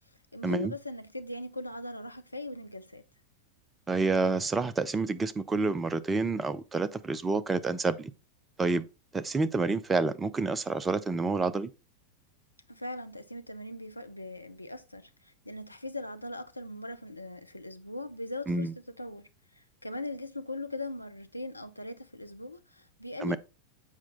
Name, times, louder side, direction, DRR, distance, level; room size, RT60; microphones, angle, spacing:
voice 1, 0.3-3.0 12.7-19.3 19.5-23.4, left 2 dB, 85° left, 0.6 m, -40 dB
voice 2, 3.9-8.1 8.6-8.9 9.1-11.7 18.5-18.7 23.2-23.4, right 3 dB, 15° right, 0.5 m, -28 dB
7.4 x 4.4 x 3.8 m
figure-of-eight pair, 90°, 0 cm